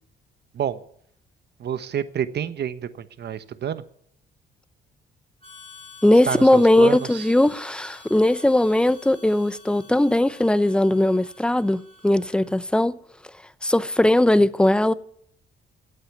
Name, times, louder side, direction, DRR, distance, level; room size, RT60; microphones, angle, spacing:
voice 1, 1.6-3.8 6.3-7.3, right 9 dB, 55° right, 1.2 m, -28 dB
Harmonica, 5.4-12.7, left 4 dB, 30° left, 6.9 m, -48 dB
voice 2, 6.0-12.9 13.6-14.9, left 1 dB, 5° left, 0.7 m, -19 dB
16.5 x 8.2 x 9.3 m
cardioid pair, 90°, 20 cm